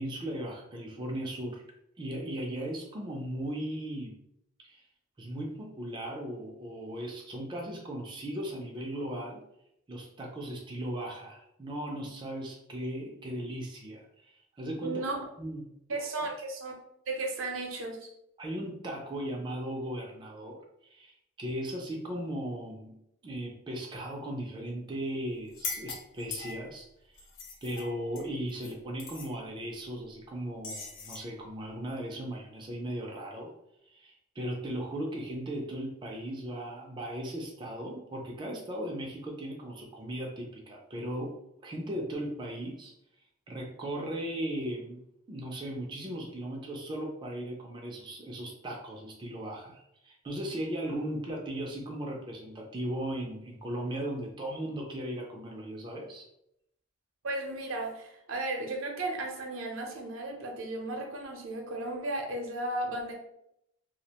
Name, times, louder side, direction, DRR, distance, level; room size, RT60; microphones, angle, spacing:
voice 1, 0.0-1.6 2.0-4.1 4.6-4.8 5.2-9.4 9.9-15.0 15.4-15.7 18.4-20.6 20.8-23.0 23.2-27.2 27.6-33.5 33.9-42.9 43.5-45.0 45.3-56.3, right 1 dB, 25° right, 0 dB, 0.3 m, -37 dB
voice 2, 14.8-15.2 15.9-16.7 17.1-18.1 57.2-63.1, right 2 dB, 85° right, 1 dB, 0.6 m, -35 dB
sound 1, 25.5-26.8 27.2-28.7 29.0-29.3 30.6-31.3, left 5 dB, 70° left, 0.4 m, -40 dB
2.3 x 2.1 x 2.8 m, 0.79 s
head